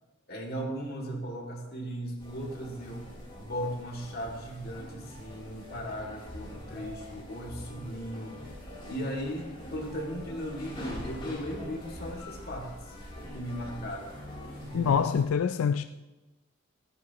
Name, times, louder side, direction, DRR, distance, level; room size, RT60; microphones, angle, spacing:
voice 1, 0.3-8.4 8.9-13.0 13.3-14.1 14.6-15.1, equal, 45° left, 2.5 m, -37 dB
sound 1, 2.2-15.3, left 1 dB, 25° left, 3.3 m, -44 dB
voice 2, 14.7-15.8, left 7 dB, 80° left, 0.4 m, -25 dB
28.5 x 9.7 x 3.0 m
head